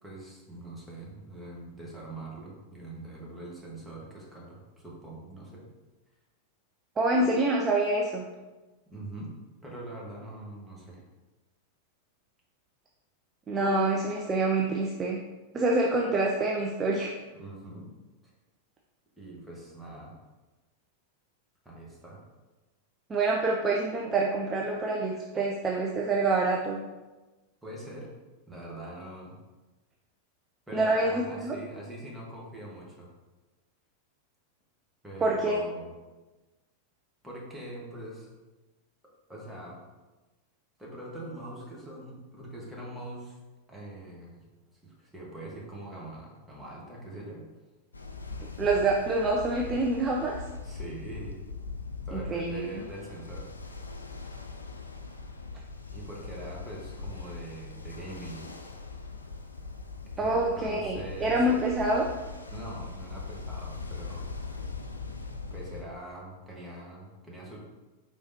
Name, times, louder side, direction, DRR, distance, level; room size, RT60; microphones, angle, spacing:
voice 1, 0.0-5.6 8.9-9.3 9.6-11.0 17.3-17.9 19.2-20.2 21.6-22.2 27.6-28.2 28.5-29.4 30.7-33.1 35.0-35.9 37.2-38.3 39.3-39.8 40.8-43.4 43.7-44.4 44.8-47.4 50.6-51.4 52.0-53.5 55.8-58.5 60.2-61.5 62.5-64.3 65.5-67.6, right 1 dB, 5° right, -5 dB, 1.2 m, -43 dB
voice 2, 7.0-8.3 13.5-15.2 15.5-17.1 23.1-26.8 30.7-31.6 35.2-35.6 48.6-50.4 52.1-52.8 60.2-62.1, right 2 dB, 20° right, -1 dB, 0.4 m, -26 dB
Ocean, 47.9-65.8, left 4 dB, 80° left, 0.3 m, -41 dB
4.8 x 3.5 x 2.7 m, 1.2 s
figure-of-eight pair, 90°, 0 cm